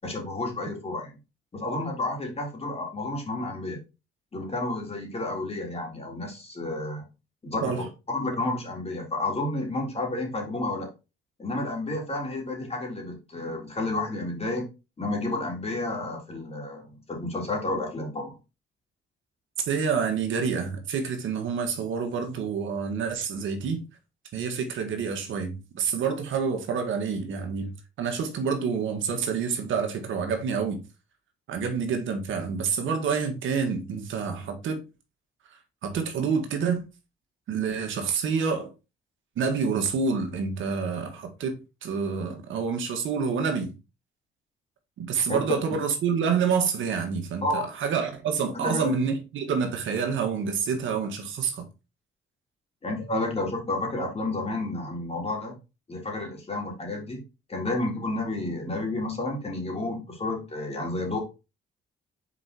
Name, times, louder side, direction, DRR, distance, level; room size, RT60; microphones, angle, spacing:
voice 1, 0.0-1.1 1.5-3.8 4.3-7.0 7.4-7.9 8.1-10.9 11.4-14.6 15.0-18.3 45.3-45.4 47.4-47.6 48.6-48.9 52.8-55.6 55.9-57.2 57.5-61.2, left 2 dB, 30° left, 3.4 m, -31 dB
voice 2, 19.6-23.8 24.3-27.7 28.0-30.8 31.5-34.8 35.8-36.8 37.5-38.7 39.4-43.7 45.0-51.6, right 6 dB, 75° right, 1.8 m, -28 dB
6.0 x 4.7 x 4.3 m
cardioid pair, 90°, 20 cm